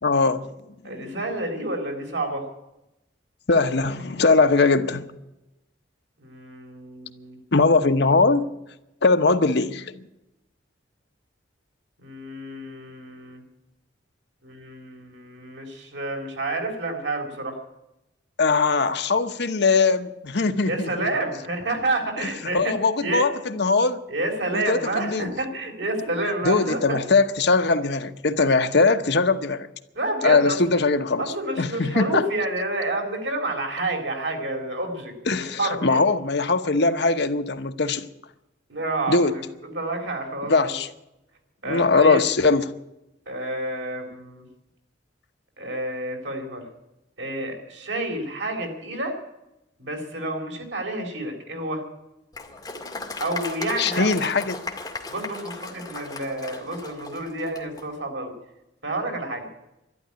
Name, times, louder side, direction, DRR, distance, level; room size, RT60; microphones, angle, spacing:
voice 1, 0.0-0.5 0.8-1.2 3.5-5.1 7.5-8.5 9.0-10.1 18.4-20.9 22.2-24.0 24.5-25.3 26.4-29.7 30.2-32.3 35.3-38.1 39.1-39.3 40.5-40.9 41.6-42.7 53.8-54.6, left 3 dB, 65° left, 1.0 m, -21 dB
voice 2, 0.8-2.5 6.2-7.4 12.0-13.4 14.4-17.6 20.7-22.7 23.0-23.2 24.1-27.0 29.9-30.6 31.2-36.0 38.7-39.4 39.7-40.7 41.6-42.2 43.3-44.4 45.6-46.7 47.2-49.2 49.8-51.8 53.2-54.2 55.1-58.3 58.8-59.5, right 2 dB, 75° right, 4.1 m, -29 dB
Applause, 52.3-57.9, left 3 dB, 20° left, 2.0 m, -36 dB
12.0 x 11.5 x 9.8 m
head